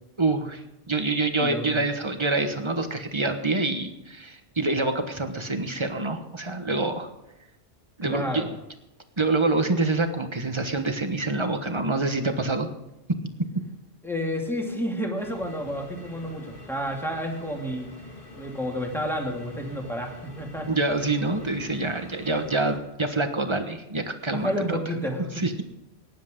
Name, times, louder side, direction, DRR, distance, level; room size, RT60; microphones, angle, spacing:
voice 1, 0.2-7.1 8.0-8.6 9.2-12.7 20.7-24.8 25.4-25.5, right 2 dB, 25° right, 6 dB, 1.3 m, -26 dB
voice 2, 1.4-1.8 8.0-8.5 14.0-17.9 18.4-20.7 24.3-25.4, equal, ahead, 0 dB, 2.4 m, -30 dB
sound 1, 15.2-22.8, left 2 dB, 55° left, 2.3 m, -45 dB
19.0 x 10.5 x 3.8 m, 0.93 s
omnidirectional pair, 1.1 m